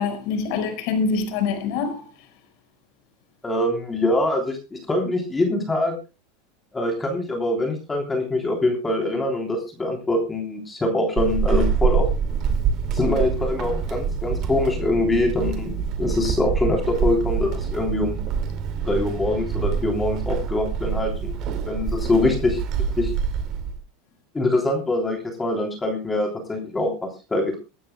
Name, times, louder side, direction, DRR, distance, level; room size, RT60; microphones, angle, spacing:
voice 1, 0.0-2.1, left 5 dB, 60° left, 4.9 m, -25 dB
voice 2, 3.4-5.9 6.7-12.1 12.9-18.2 18.8-21.3 21.6-22.6 23.0-23.1 24.3-27.6, left 2 dB, 15° left, 3.3 m, -24 dB
Walk footsteps / Squeak, 11.2-23.8, right 7 dB, 45° right, 2.2 m, -25 dB
25.0 x 12.5 x 2.2 m
supercardioid pair, 115°, 0 cm